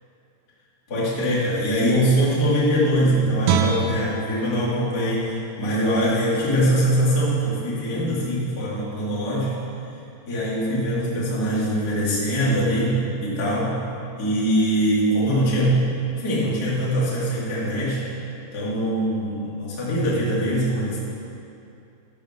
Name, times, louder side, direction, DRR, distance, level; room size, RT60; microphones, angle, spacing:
voice 1, 0.9-9.5 10.3-13.8 14.2-15.8 16.2-18.0 18.5-21.0, equal, 35° left, -9 dB, 1.5 m, -22 dB
Guitar, 3.4-6.6 7.0-7.2, right 5 dB, 90° right, 3.4 m, -28 dB
13.5 x 5.2 x 6.6 m, 2.7 s
omnidirectional pair, 5.9 m